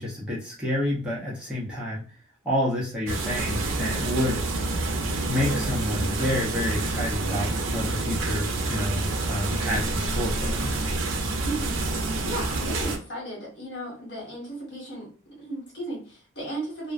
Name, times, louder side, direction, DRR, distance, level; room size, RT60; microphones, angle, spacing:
voice 1, 0.0-2.0 2.4-4.4 5.3-10.8, left 1 dB, 5° right, -7 dB, 0.6 m, -29 dB
sound 1, 3.1-13.0, right 2 dB, 85° right, 0.5 m, -28 dB
voice 2, 11.4-11.8 12.2-15.1 15.4-16.9, right 1 dB, 60° left, -4 dB, 1.4 m, -35 dB
2.4 x 2.1 x 2.4 m, 0.38 s
head